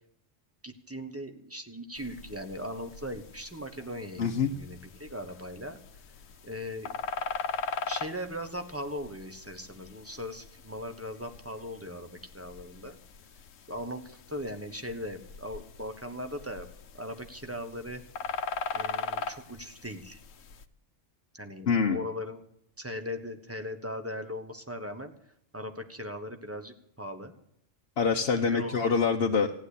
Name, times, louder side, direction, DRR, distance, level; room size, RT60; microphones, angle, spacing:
voice 1, 0.6-5.8 6.4-6.9 7.9-13.0 13.7-16.7 16.9-18.0 18.7-20.2 21.3-22.4 22.8-25.1 25.5-27.3 28.4-28.8, left 1 dB, 10° right, 7 dB, 1.3 m, -39 dB
sound 1, 1.9-20.6, left 5 dB, 80° left, 1.3 m, -41 dB
voice 2, 4.2-4.5 21.7-22.0 28.0-29.5, left 5 dB, 55° left, 2 dB, 1.1 m, -25 dB
15.5 x 10.0 x 8.3 m, 0.72 s
omnidirectional pair, 1.3 m